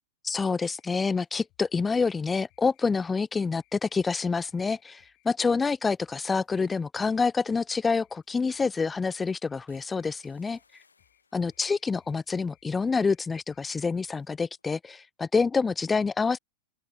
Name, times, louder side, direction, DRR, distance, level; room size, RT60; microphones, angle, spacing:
voice 1, 0.2-10.6 11.3-16.4, left 4 dB, 15° left, 0.4 m, -27 dB
sound 1, 0.7-14.3, left 25 dB, 40° left, 6.5 m, -69 dB
sound 2, 9.7-13.4 13.7-14.1 14.5-14.8, left 4 dB, 75° left, 4.9 m, -67 dB
open air
figure-of-eight pair, 90°, 0 cm